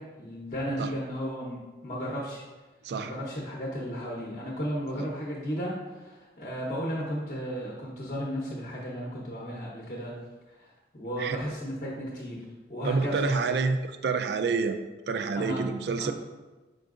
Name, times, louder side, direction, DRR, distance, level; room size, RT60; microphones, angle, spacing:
voice 1, 0.0-2.4 3.0-10.2 10.5-13.6 15.3-15.7 16.0-16.1, equal, 45° left, -3 dB, 0.7 m, -34 dB
voice 2, 12.8-13.8 14.0-14.8 15.1-16.1, right 4 dB, 65° right, 8 dB, 0.3 m, -27 dB
5.5 x 3.9 x 2.5 m, 1.2 s
head